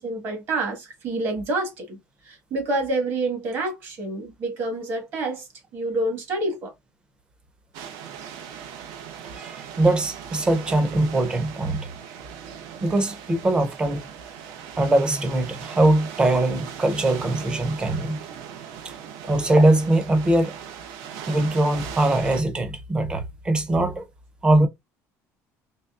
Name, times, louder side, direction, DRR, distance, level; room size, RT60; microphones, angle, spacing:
voice 1, 0.0-2.0 2.3-5.4 5.7-6.7, right 2 dB, 40° right, 1.6 m, -27 dB
sound 1, 7.7-22.4, right 8 dB, 80° right, 0.9 m, -39 dB
voice 2, 9.4-11.9 12.8-14.0 14.8-18.2 18.8-18.9 19.3-20.6 21.3-24.0 24.4-24.7, right 1 dB, 15° right, 0.7 m, -21 dB
4.0 x 3.2 x 2.4 m
cardioid pair, 175°, 6 cm